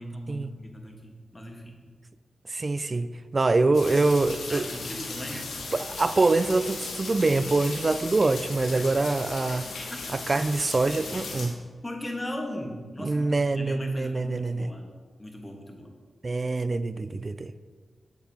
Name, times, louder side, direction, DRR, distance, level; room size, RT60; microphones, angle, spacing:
voice 1, 0.0-1.8 3.8-5.4 8.7-8.9 9.9-10.0 11.8-14.9 15.2-15.9, equal, 30° left, 1.4 m, -38 dB
voice 2, 2.5-4.7 5.7-9.7 10.1-11.6 13.0-14.7 16.2-17.5, right 3 dB, 45° right, 0.3 m, -25 dB
sound 1, 3.7-11.5, left 3 dB, 90° left, 1.0 m, -37 dB
7.7 x 6.7 x 2.9 m
cardioid pair, 40°, 0 cm